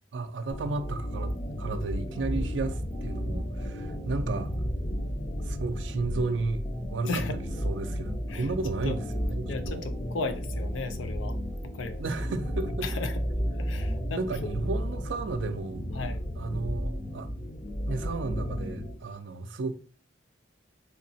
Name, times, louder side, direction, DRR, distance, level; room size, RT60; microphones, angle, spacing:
voice 1, 0.1-4.5 5.4-6.6 6.9-7.2 7.6-9.9 12.0-12.9 14.1-15.9 16.3-17.3 17.9-19.7, right 3 dB, 70° right, 0.4 m, -33 dB
sound 1, 0.5-18.9, equal, 25° left, 0.5 m, -33 dB
voice 2, 7.0-7.4 8.3-8.5 8.8-9.0 9.5-11.4 11.8-12.0 12.8-13.1 13.6-14.2 15.9-16.2, left 3 dB, 75° left, 0.5 m, -34 dB
3.6 x 2.8 x 2.7 m
head